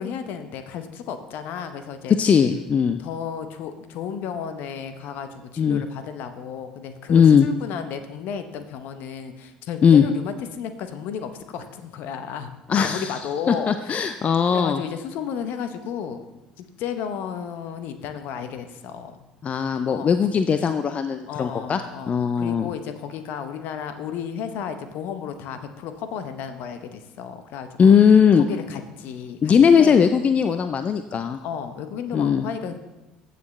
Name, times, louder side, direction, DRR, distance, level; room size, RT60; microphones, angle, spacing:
voice 1, 0.0-2.2 3.0-14.2 14.5-16.2 16.6-19.2 19.9-20.1 21.3-27.9 28.3-30.0 31.4-32.8, left 7 dB, 65° left, 9 dB, 0.9 m, -33 dB
voice 2, 2.2-3.0 5.6-5.8 7.1-7.5 9.8-10.0 12.7-13.1 13.5-14.8 19.4-21.8 22.1-22.7 27.8-28.5 29.4-31.4 32.1-32.4, left 7 dB, 40° left, 9 dB, 0.5 m, -18 dB
15.0 x 6.7 x 3.2 m, 1.0 s
hypercardioid pair, 60°, 4 cm